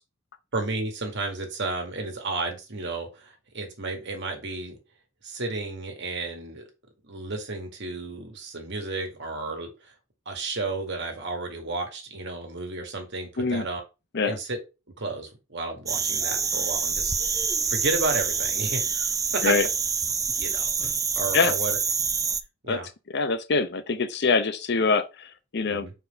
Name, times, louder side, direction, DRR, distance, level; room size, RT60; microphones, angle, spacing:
voice 1, 0.5-4.8 5.2-6.6 7.0-9.9 10.3-13.8 14.2-14.6 15.0-19.5 20.4-21.8 22.6-22.9 25.7-25.9, right 3 dB, 60° right, 1.9 m, -32 dB
sound 1, 15.9-22.4, right 6 dB, 15° right, 0.5 m, -26 dB
voice 2, 23.1-25.9, left 4 dB, 60° left, 0.7 m, -24 dB
4.6 x 4.2 x 5.3 m
head